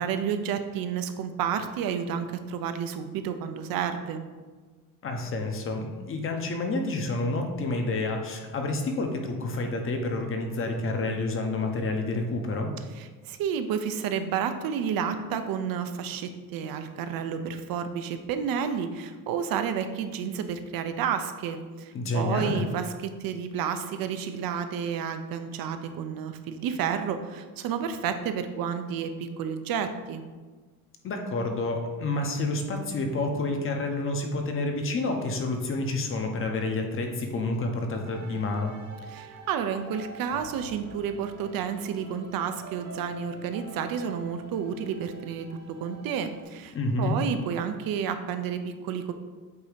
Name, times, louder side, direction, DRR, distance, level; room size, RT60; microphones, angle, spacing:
voice 1, 0.0-4.2 13.0-30.2 39.1-49.1, right 7 dB, 65° right, 8 dB, 0.6 m, -31 dB
voice 2, 5.0-12.7 21.9-22.7 31.0-38.7 46.7-47.2, left 2 dB, 35° left, 3 dB, 0.8 m, -29 dB
sound 1, 38.0-46.4, right 2 dB, 45° right, 1.1 m, -46 dB
8.1 x 2.8 x 5.0 m, 1.4 s
cardioid pair, 155°, 37 cm